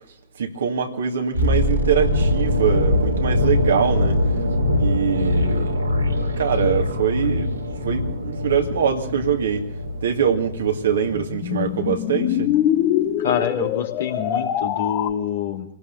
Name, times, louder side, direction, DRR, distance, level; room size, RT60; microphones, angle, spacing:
voice 1, 0.4-4.2 4.7-5.8 6.4-9.6 10.0-12.5, right 7 dB, 65° right, 2.0 m, -23 dB
sound 1, 1.3-11.3 11.6-11.8, left 1 dB, 85° right, 3.4 m, -23 dB
sound 2, 10.2-15.1, left 11 dB, 40° left, 1.4 m, -24 dB
voice 2, 13.2-15.6, left 8 dB, 65° left, 2.8 m, -26 dB
28.0 x 18.0 x 2.6 m
figure-of-eight pair, 90°, 0 cm